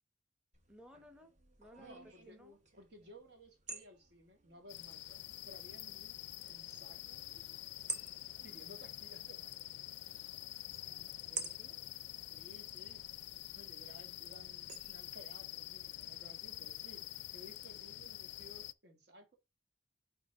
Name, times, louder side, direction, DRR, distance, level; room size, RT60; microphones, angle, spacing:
sound 1, 0.5-15.2, right 4 dB, 40° right, 1.2 m, -52 dB
voice 1, 0.7-1.3 1.6-2.6 10.8-11.8, equal, 5° right, 0.9 m, -59 dB
voice 2, 1.8-2.4 2.8-7.2 8.2-9.6 12.3-13.1 13.6-17.0 17.3-19.3, equal, 65° right, 1.8 m, -58 dB
sound 2, 4.7-18.7, left 15 dB, 70° left, 0.4 m, -47 dB
9.2 x 3.7 x 3.6 m
head